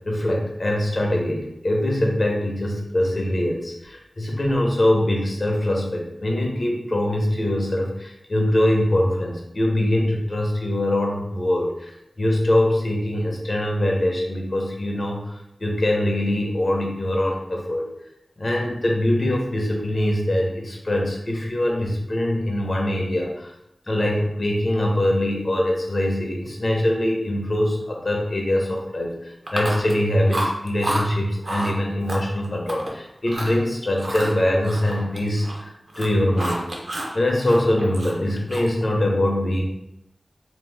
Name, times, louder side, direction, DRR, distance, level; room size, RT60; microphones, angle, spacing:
voice 1, 0.1-11.9 12.2-17.9 18.4-23.5 23.9-36.6 37.1-39.6, left 1 dB, 50° left, -1 dB, 0.7 m, -23 dB
Chewing mastication, 29.5-30.0 30.3-31.0 31.4-31.7 32.1-32.9 33.2-33.6 34.0-35.6 35.9-37.1 37.4-38.8, right 1 dB, 60° right, 0.5 m, -29 dB
2.8 x 2.0 x 3.3 m, 0.82 s
wide cardioid pair, 65°, 0 cm